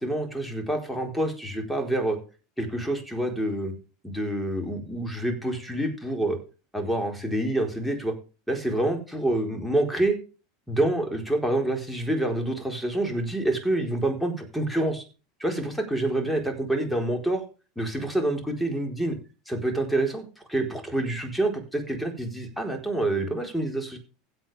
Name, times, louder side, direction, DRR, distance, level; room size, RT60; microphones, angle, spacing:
voice 1, 0.0-2.2 2.6-3.7 4.0-6.4 6.7-8.1 8.5-10.2 10.7-15.0 15.4-17.4 17.8-19.2 19.5-24.0, right 1 dB, ahead, 3 dB, 4.2 m, -27 dB
16.0 x 8.0 x 3.5 m, 0.33 s
figure-of-eight pair, 80°, 0 cm